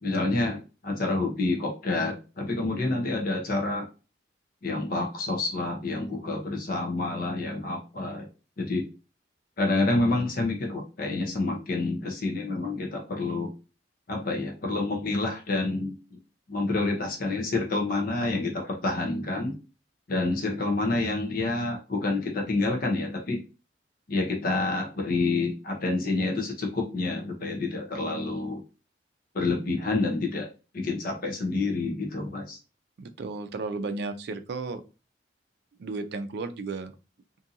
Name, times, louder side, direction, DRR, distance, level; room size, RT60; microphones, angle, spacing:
voice 1, 0.0-3.9 4.6-8.3 8.6-8.9 9.6-13.5 14.1-15.9 16.5-19.5 20.1-23.4 24.1-28.6 29.3-30.5 30.7-32.6, left 2 dB, 50° left, 2 dB, 0.7 m, -28 dB
voice 2, 33.0-34.8 35.8-36.9, right 3 dB, 65° right, 9 dB, 0.4 m, -34 dB
2.6 x 2.5 x 2.6 m, 0.32 s
head